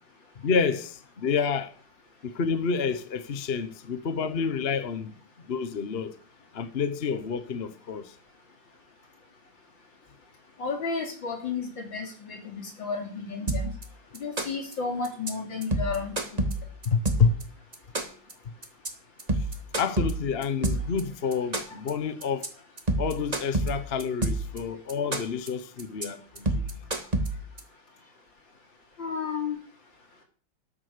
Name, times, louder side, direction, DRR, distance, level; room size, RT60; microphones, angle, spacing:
voice 1, 0.4-1.7 2.2-5.2 5.4-6.2 6.5-8.1 16.8-17.4 19.8-22.5 23.0-26.5, left 5 dB, 40° left, 1.0 m, -28 dB
voice 2, 10.6-13.7 14.1-16.5 29.0-29.6, left 4 dB, 70° left, 3.9 m, -32 dB
sound 1, 13.5-13.8 14.1-14.7 15.0-15.3 15.6-17.4 17.7-18.3 18.6-18.9 19.2-21.0 21.3-21.9 22.2-22.5 22.8-24.6 24.9-25.5 25.8-26.0 26.4-27.6, right 2 dB, 20° right, 1.7 m, -28 dB
13.0 x 10.0 x 6.7 m
omnidirectional pair, 2.2 m